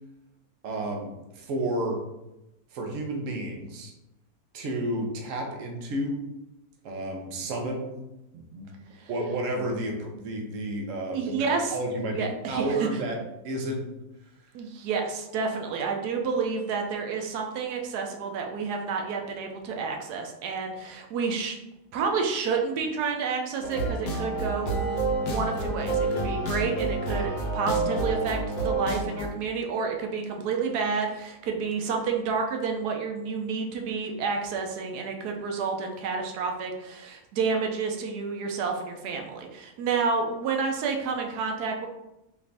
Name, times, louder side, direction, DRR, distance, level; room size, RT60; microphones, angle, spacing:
voice 1, 0.6-2.0 2.7-3.9 4.5-6.2 6.8-8.0 8.3-8.7 9.1-13.2 13.4-13.9, right 1 dB, 60° right, 1 dB, 1.1 m, -31 dB
voice 2, 11.1-11.8 12.1-12.9 14.5-21.6 21.9-24.7 25.3-41.9, right 5 dB, 85° right, 2 dB, 1.2 m, -29 dB
sound 1, 23.6-29.3, right 2 dB, 80° left, 1.3 m, -28 dB
4.9 x 2.5 x 3.3 m, 0.91 s
omnidirectional pair, 1.6 m